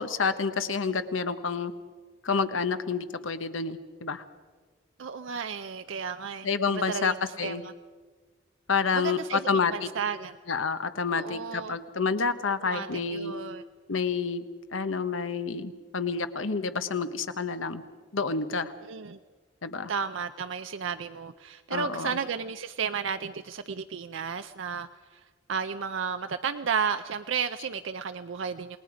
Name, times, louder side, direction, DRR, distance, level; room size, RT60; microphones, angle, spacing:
voice 1, 0.0-1.7 2.2-4.2 6.4-7.6 8.7-9.9 10.5-13.3 13.9-14.4 14.7-17.8 18.1-18.7 19.6-19.9 21.7-22.2, left 5 dB, 80° left, 11 dB, 1.1 m, -29 dB
voice 2, 5.0-6.5 6.7-7.1 7.4-7.7 8.9-10.4 11.1-11.8 12.7-13.6 18.9-19.2 19.9-25.2 25.5-28.8, right 6 dB, 70° right, 9 dB, 0.5 m, -33 dB
28.5 x 19.0 x 5.0 m, 1.5 s
head